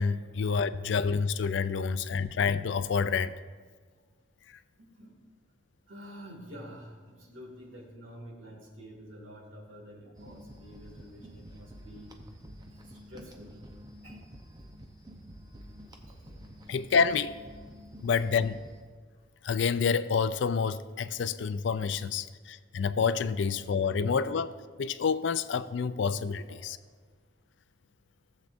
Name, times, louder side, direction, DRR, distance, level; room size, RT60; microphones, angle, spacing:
voice 1, 0.0-3.3 16.7-17.3 18.0-18.6 19.4-26.8, left 5 dB, 65° left, 0.4 m, -28 dB
voice 2, 4.8-5.2 5.9-12.2 12.7-13.6 14.0-14.2 16.1-16.3 18.2-18.3 19.1-19.2 26.5-26.7, equal, 80° right, 2.2 m, -49 dB
sound 1, 10.1-18.8, equal, 20° right, 0.7 m, -49 dB
17.0 x 7.3 x 2.5 m
head